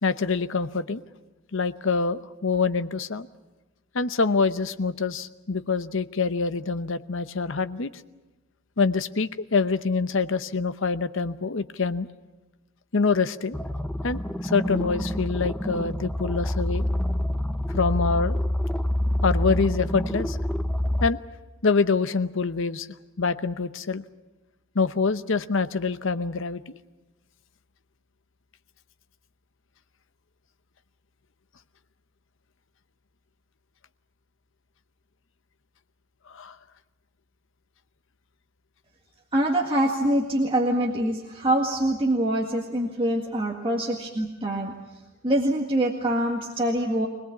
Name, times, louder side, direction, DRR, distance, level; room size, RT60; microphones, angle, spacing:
voice 1, 0.0-1.0 1.5-3.3 3.9-7.9 8.8-12.1 12.9-13.6 14.0-16.8 17.7-18.4 19.2-20.4 21.0-21.2 21.6-22.9 23.2-24.0 24.7-26.7 36.3-36.6, left 4 dB, 60° left, 12 dB, 0.8 m, -25 dB
sound 1, 13.5-21.1, left 1 dB, 5° left, 0.8 m, -27 dB
voice 2, 39.3-44.8 45.2-47.1, right 1 dB, 25° right, -1 dB, 1.9 m, -24 dB
24.5 x 19.0 x 8.3 m, 1.1 s
head